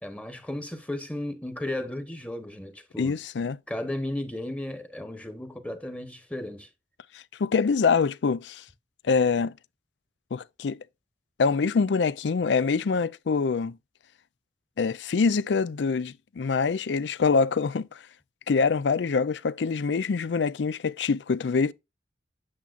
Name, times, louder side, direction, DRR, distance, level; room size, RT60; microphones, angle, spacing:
voice 1, 0.0-3.2 3.7-6.7, left 1 dB, 10° left, 1.0 m, -34 dB
voice 2, 3.0-3.6 7.1-8.6 9.0-9.5 10.3-10.8 11.4-13.8 14.8-18.0 18.5-21.7, left 5 dB, 85° left, 0.4 m, -25 dB
8.7 x 7.0 x 2.5 m
head